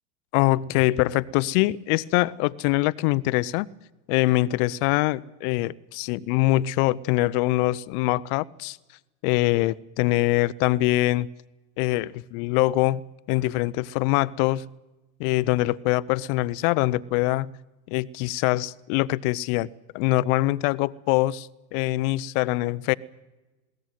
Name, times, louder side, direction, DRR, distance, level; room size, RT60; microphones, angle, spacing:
voice 1, 0.3-3.7 4.1-8.8 9.2-11.3 11.8-13.0 13.3-14.6 15.2-17.5 17.9-19.7 19.9-22.9, left 18 dB, 55° left, 0.9 m, -23 dB
21.0 x 17.5 x 9.3 m
hypercardioid pair, 105°, 50 cm